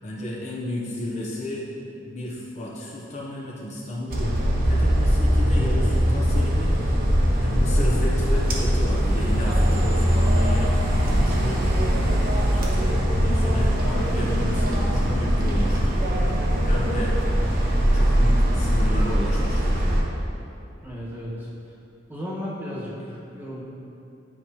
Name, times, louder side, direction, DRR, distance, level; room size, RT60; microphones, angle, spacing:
voice 1, 0.0-1.7 2.0-7.1 7.4-11.6 12.5-17.2 17.9-19.9, left 1 dB, 40° left, -4 dB, 0.7 m, -33 dB
sound 1, 4.1-20.0, equal, 50° right, 0.9 m, -21 dB
voice 2, 20.8-21.7 22.1-23.6, equal, 10° right, -7 dB, 1.3 m, -34 dB
9.7 x 4.5 x 2.8 m, 2.8 s
head